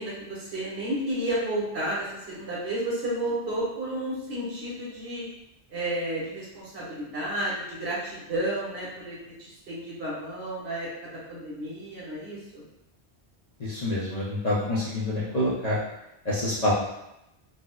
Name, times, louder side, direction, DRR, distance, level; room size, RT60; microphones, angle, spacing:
voice 1, 0.0-5.2 5.7-12.6, right 1 dB, 75° right, -8 dB, 1.4 m, -32 dB
voice 2, 13.6-15.8 16.2-16.7, left 1 dB, 45° left, -8 dB, 0.6 m, -27 dB
4.1 x 2.1 x 2.3 m, 0.88 s
omnidirectional pair, 1.1 m